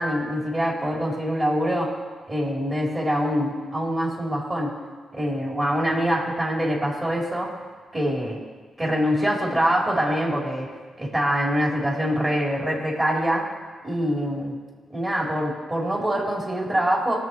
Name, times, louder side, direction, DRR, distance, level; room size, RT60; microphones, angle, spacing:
voice 1, 0.0-1.9 2.3-4.7 5.1-7.5 7.9-8.4 8.8-10.7 11.0-13.4 13.8-14.6 14.9-17.2, equal, 30° right, -3 dB, 4.2 m, -24 dB
18.5 x 7.0 x 4.7 m, 1.5 s
supercardioid pair, 60°, 0 cm